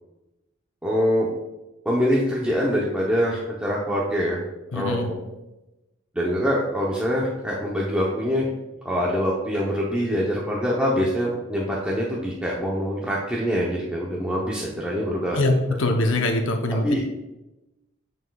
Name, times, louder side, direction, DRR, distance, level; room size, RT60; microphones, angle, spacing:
voice 1, 0.8-1.3 1.8-4.4 4.7-5.2 6.1-8.5 8.8-15.6 16.8-17.0, equal, 5° right, -5 dB, 0.7 m, -24 dB
voice 2, 4.7-5.1 15.3-15.5 15.8-17.0, left 2 dB, 70° left, 4 dB, 0.7 m, -23 dB
9.5 x 4.6 x 2.3 m, 0.98 s
head